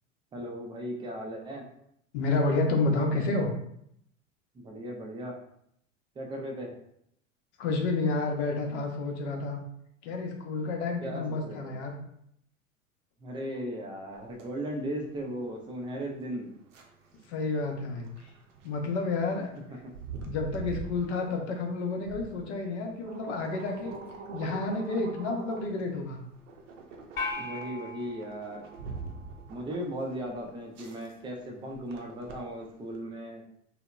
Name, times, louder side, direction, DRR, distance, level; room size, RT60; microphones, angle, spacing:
voice 1, 0.3-1.7 4.5-5.4 6.2-6.7 11.0-11.7 13.2-16.5 27.4-28.7 29.5-33.4, equal, 15° right, 0 dB, 0.4 m, -37 dB
voice 2, 2.1-3.5 7.6-9.6 10.0-12.0 17.3-18.3 18.6-19.5 20.2-23.9 24.3-26.2, left 3 dB, 60° left, 2 dB, 0.7 m, -30 dB
sound 1, 14.1-33.0, right 4 dB, 70° right, 0.6 m, -45 dB
sound 2, 27.2-29.6, left 2 dB, 35° left, 0.9 m, -39 dB
2.7 x 2.0 x 2.2 m, 0.72 s
figure-of-eight pair, 80°, 39 cm